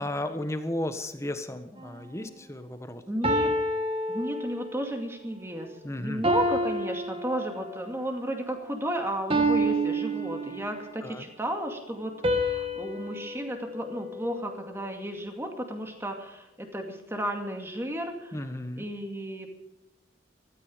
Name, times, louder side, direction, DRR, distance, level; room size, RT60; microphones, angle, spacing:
voice 1, 0.0-3.0 5.8-6.2 11.0-11.2 18.3-18.8, left 1 dB, 15° left, 9 dB, 1.2 m, -34 dB
sound 1, 1.8-2.1 3.2-4.9 6.2-7.9 9.3-10.9 12.2-14.7, right 1 dB, 30° right, 1.7 m, -29 dB
voice 2, 3.0-3.5 4.1-18.4 18.7-19.5, right 1 dB, 15° right, 3 dB, 2.2 m, -33 dB
16.0 x 13.5 x 5.1 m, 0.95 s
head